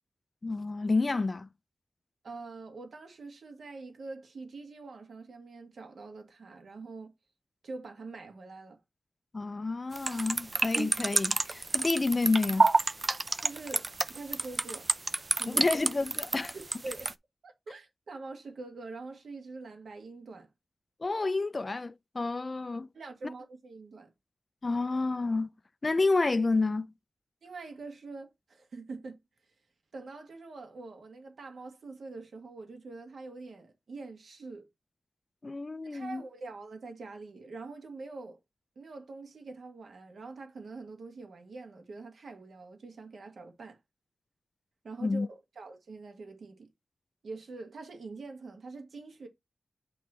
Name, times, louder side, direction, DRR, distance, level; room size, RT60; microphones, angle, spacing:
voice 1, 0.4-1.5 9.3-12.7 15.5-16.5 21.0-22.9 24.6-25.5 25.8-26.9 35.4-36.2 45.0-45.3, left 3 dB, 30° left, 0.4 m, -29 dB
voice 2, 2.2-7.1 7.6-8.8 13.4-14.9 15.4-15.6 16.5-17.1 17.4-20.5 22.9-24.1 27.4-29.2 29.9-34.7 35.8-38.4 38.7-43.8 44.8-46.7 47.2-49.3, right 3 dB, 75° right, 1.7 m, -44 dB
sound 1, 10.0-17.1, right 3 dB, 30° right, 0.4 m, -29 dB
8.4 x 3.1 x 4.3 m
wide cardioid pair, 150°, 0 cm